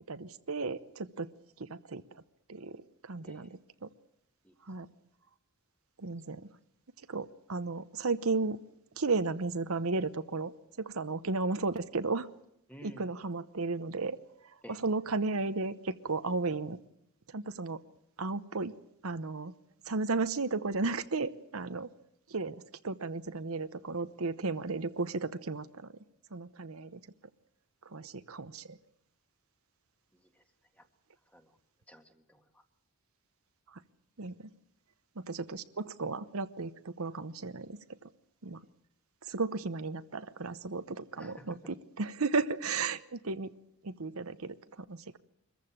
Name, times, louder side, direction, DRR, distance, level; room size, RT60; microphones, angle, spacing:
voice 1, 0.1-1.3 1.6-2.0 2.5-3.9 4.6-4.9 6.0-6.5 7.1-8.6 9.0-10.5 10.8-12.3 12.8-14.2 14.4-16.8 17.3-17.8 18.2-18.7 19.0-19.5 19.9-21.9 22.3-25.9 26.3-27.0 27.8-28.8 33.7-33.8 34.2-34.5 35.3-38.1 38.4-38.6 39.2-43.5 43.8-45.2, right 3 dB, 70° right, 12 dB, 0.9 m, -34 dB
voice 2, 12.7-13.1 14.6-14.8 30.1-30.4 30.8-30.9 31.3-31.6 31.9-32.6 41.1-41.5, equal, 5° left, 6 dB, 1.7 m, -53 dB
24.0 x 14.5 x 8.7 m, 0.81 s
head